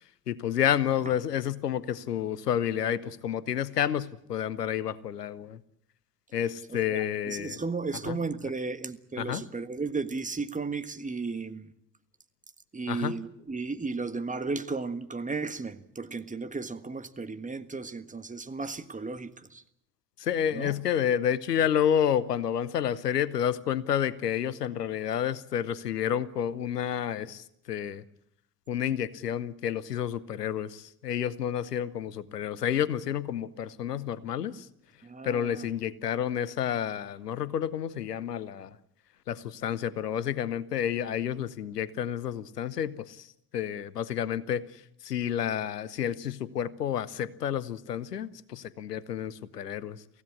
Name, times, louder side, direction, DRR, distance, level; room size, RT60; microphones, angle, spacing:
voice 1, 0.3-5.6 6.3-7.6 8.1-8.2 9.2-9.4 12.9-13.1 20.2-28.0 28.7-34.7 35.2-38.8 39.3-43.3 43.5-50.0, left 9 dB, 85° left, 0.9 m, -30 dB
voice 2, 6.7-11.7 12.7-19.6 20.5-20.8 35.0-35.7, right 4 dB, 15° right, 1.6 m, -34 dB
24.0 x 16.0 x 9.9 m
figure-of-eight pair, 55°, 47 cm